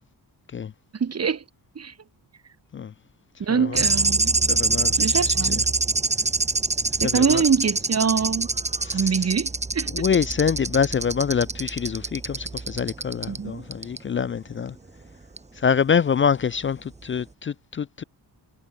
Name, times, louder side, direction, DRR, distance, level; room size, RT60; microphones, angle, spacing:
voice 1, 1.0-1.4 1.8-1.9 3.4-4.3 5.0-5.6 7.0-8.5 8.9-9.9 13.3-13.6, right 6 dB, 40° right, 2.0 m, -24 dB
voice 2, 3.5-3.8 4.5-5.5 7.0-7.4 8.8-9.0 9.9-14.7 15.6-18.0, left 7 dB, 30° left, 0.4 m, -25 dB
sound 1, 3.7-13.4 13.7-14.0 15.4-15.5, right 3 dB, 15° right, 1.4 m, -25 dB
wide cardioid pair, 145°, 39 cm